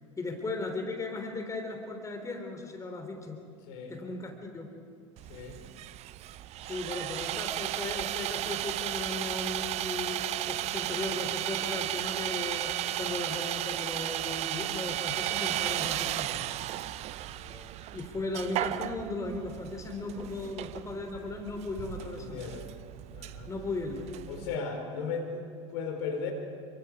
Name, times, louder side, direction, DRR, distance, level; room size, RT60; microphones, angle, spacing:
voice 1, 0.2-3.4 3.9-4.7 6.7-12.7 13.0-16.4 17.9-22.5 23.5-24.1, left 2 dB, 20° left, 4 dB, 3.4 m, -37 dB
voice 2, 3.6-4.0 5.3-5.6 17.3-17.7 21.9-22.7 23.1-23.5 24.3-26.3, left 5 dB, 60° left, 4 dB, 4.3 m, -37 dB
Sawing, 5.2-24.6, right 14 dB, 45° right, 0.8 m, -35 dB
29.5 x 23.5 x 4.9 m, 2.1 s
figure-of-eight pair, 70°, 16 cm